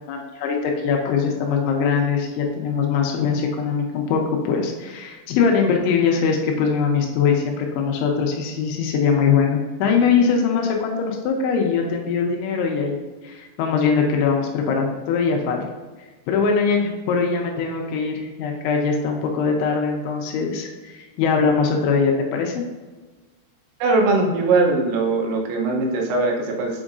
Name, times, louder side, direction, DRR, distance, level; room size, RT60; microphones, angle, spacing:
voice 1, 0.1-15.7 16.3-22.6, left 5 dB, 85° left, 1 dB, 3.0 m, -22 dB
voice 2, 23.8-26.8, right 3 dB, 80° right, 0 dB, 3.2 m, -20 dB
7.1 x 5.3 x 2.5 m, 1.3 s
omnidirectional pair, 5.5 m